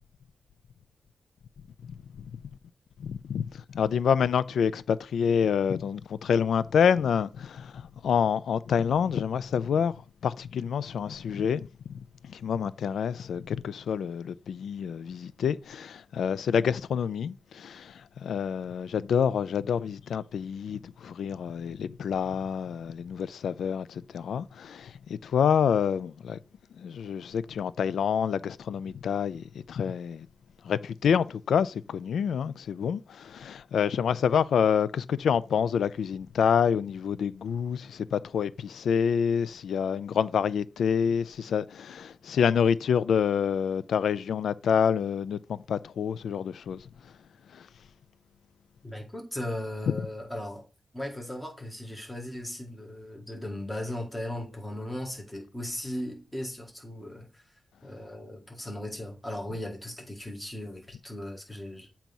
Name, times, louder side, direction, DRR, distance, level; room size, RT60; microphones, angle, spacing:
voice 1, 1.8-2.3 3.0-10.0 10.2-26.4 26.7-30.3 30.6-47.1 47.5-47.7, left 7 dB, 85° left, 0.3 m, -27 dB
voice 2, 48.8-50.6 50.9-57.4 57.8-61.9, left 1 dB, 10° left, 1.6 m, -37 dB
7.4 x 2.9 x 5.3 m
wide cardioid pair, 160°, 0 cm